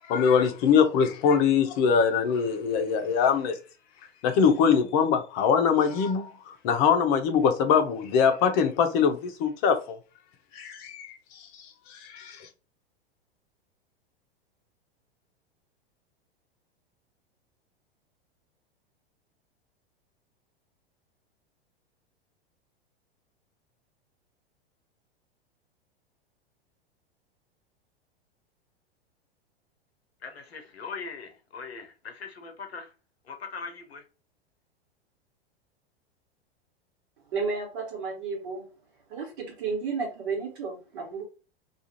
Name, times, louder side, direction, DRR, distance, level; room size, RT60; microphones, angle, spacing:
voice 1, 0.1-3.6 4.2-10.0 10.5-11.2 11.5-12.5, left 6 dB, 40° left, 0.6 m, -23 dB
voice 2, 30.2-32.9 33.2-34.0, left 5 dB, 75° left, 0.7 m, -40 dB
voice 3, 37.3-38.6 39.1-41.2, right 4 dB, 55° right, 1.3 m, -32 dB
2.4 x 2.4 x 2.8 m
figure-of-eight pair, 95°, 31 cm